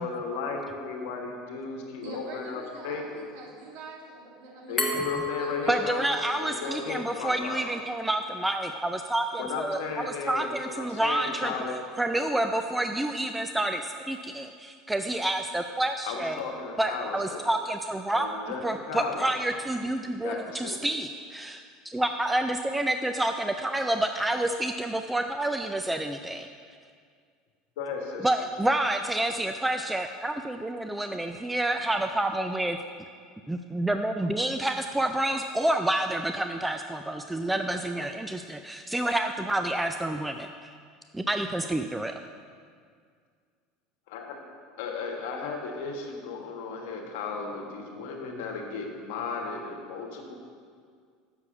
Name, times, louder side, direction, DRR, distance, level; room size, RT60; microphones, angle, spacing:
voice 1, 0.0-3.3 4.7-6.1 6.4-7.6 9.4-11.8 16.0-17.4 18.1-19.2 20.2-20.8 27.8-28.3 44.1-44.4 44.8-50.3, left 4 dB, 75° left, 1 dB, 1.3 m, -35 dB
voice 2, 2.0-5.9 6.2-6.8 7.2-7.8, right 3 dB, 75° right, -2 dB, 1.7 m, -45 dB
Glass, 4.8-7.6, left 3 dB, 20° left, 1.3 m, -33 dB
voice 3, 5.7-11.5 12.0-16.4 16.8-18.3 18.6-26.5 28.2-32.8 33.5-40.7 41.1-42.1, right 1 dB, 10° right, 6 dB, 0.3 m, -28 dB
6.9 x 4.8 x 7.0 m, 2.1 s
hypercardioid pair, 90°, 0 cm